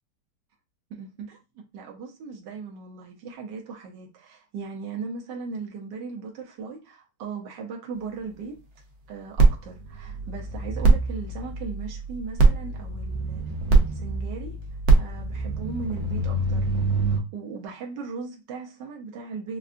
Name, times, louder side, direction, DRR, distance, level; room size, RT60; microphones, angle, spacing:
voice 1, 0.9-8.6 9.1-13.4 13.7-14.6 15.0-16.7 17.1-19.6, right 4 dB, 85° right, 1.3 m, -38 dB
sound 1, 9.4-17.2, right 3 dB, 55° right, 0.9 m, -23 dB
4.6 x 2.2 x 2.4 m
omnidirectional pair, 1.9 m